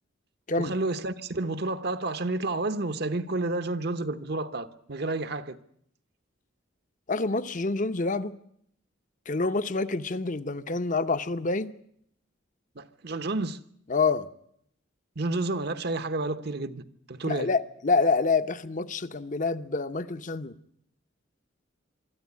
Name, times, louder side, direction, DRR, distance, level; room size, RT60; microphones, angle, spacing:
voice 1, 0.6-5.6 12.8-13.6 15.2-17.5, right 2 dB, 55° right, 1.0 m, -30 dB
voice 2, 7.1-8.4 9.3-11.7 13.9-14.3 17.2-20.5, left 3 dB, 40° left, 0.8 m, -27 dB
24.5 x 13.5 x 9.5 m
head